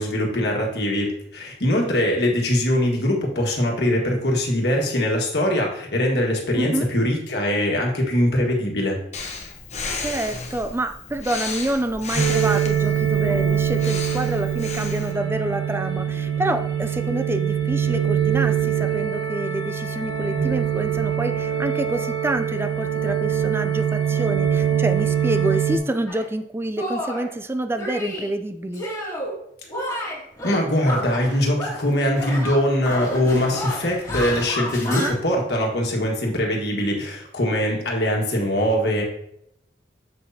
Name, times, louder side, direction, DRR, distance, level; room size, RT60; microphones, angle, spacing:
voice 1, 0.0-9.0 30.4-39.0, left 1 dB, 60° left, 0 dB, 1.6 m, -22 dB
voice 2, 6.6-6.9 10.0-28.9 34.9-35.1, right 1 dB, 15° right, 9 dB, 0.4 m, -27 dB
Breathing, 9.1-15.1, left 4 dB, 35° left, 0.9 m, -33 dB
sound 1, 12.2-25.8, right 9 dB, 85° right, 1.3 m, -23 dB
Shatter, 26.1-26.3 26.8-27.3 27.8-28.3 28.7-29.4 29.7-31.9 32.1-35.1, left 1 dB, 20° left, 2.0 m, -30 dB
7.7 x 6.2 x 2.8 m, 0.75 s
head